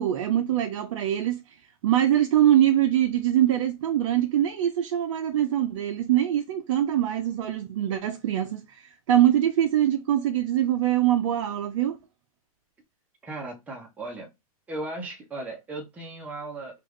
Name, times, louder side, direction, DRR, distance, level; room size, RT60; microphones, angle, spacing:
voice 1, 0.0-12.0, right 11 dB, 55° right, 0.4 m, -23 dB
voice 2, 13.2-14.3 14.7-16.8, right 2 dB, 10° right, 0.6 m, -36 dB
3.2 x 2.4 x 3.1 m
hypercardioid pair, 145°, 19 cm